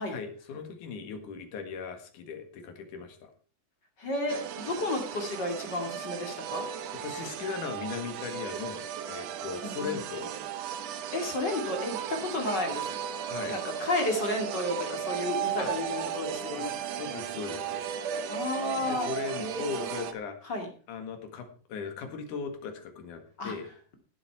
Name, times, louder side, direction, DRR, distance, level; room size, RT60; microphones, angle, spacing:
voice 1, 0.1-3.3 7.0-8.8 9.1-10.3 13.3-13.6 15.6-15.7 16.6-16.7 16.9-17.9 18.3-18.4 18.8-20.4 20.9-23.7, left 6 dB, 70° left, 6 dB, 3.2 m, -38 dB
voice 2, 4.0-6.7 9.6-10.0 11.1-12.9 13.5-16.8 18.3-19.1 19.4-19.9 20.4-20.7 23.4-23.5, left 2 dB, 35° left, 3 dB, 2.8 m, -32 dB
sound 1, 4.3-20.1, right 9 dB, 65° right, 1.8 m, -35 dB
17.0 x 8.1 x 4.6 m, 0.40 s
omnidirectional pair, 3.8 m